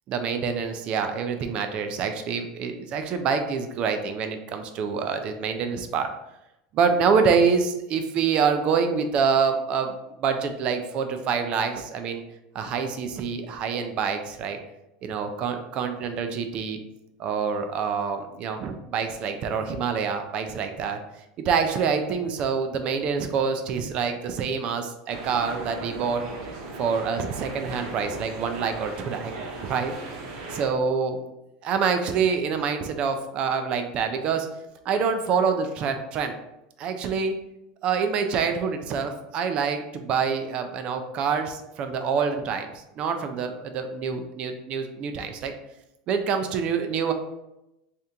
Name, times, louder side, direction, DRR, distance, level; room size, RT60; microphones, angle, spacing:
voice 1, 0.1-6.1 6.7-12.2 12.5-14.6 15.0-16.8 17.2-21.0 21.4-26.2 26.8-29.3 29.6-29.9 30.5-31.2 31.6-34.5 34.9-36.3 36.8-37.3 37.8-39.8 40.1-45.5 46.1-47.1, right 6 dB, 30° right, 6 dB, 0.3 m, -26 dB
sound 1, 25.1-30.7, right 3 dB, 65° right, 0.8 m, -37 dB
3.3 x 2.8 x 3.7 m, 0.89 s
supercardioid pair, 175°, 3 cm